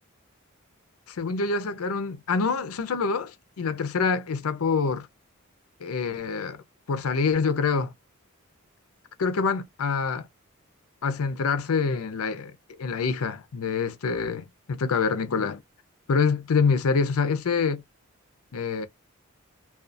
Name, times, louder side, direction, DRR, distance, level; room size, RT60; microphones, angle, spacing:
voice 1, 1.1-5.1 5.8-6.6 6.9-7.9 9.2-10.3 11.0-12.5 12.8-15.6 16.1-17.8 18.5-18.9, left 5 dB, 80° left, 0.5 m, -26 dB
2.4 x 2.3 x 2.5 m
head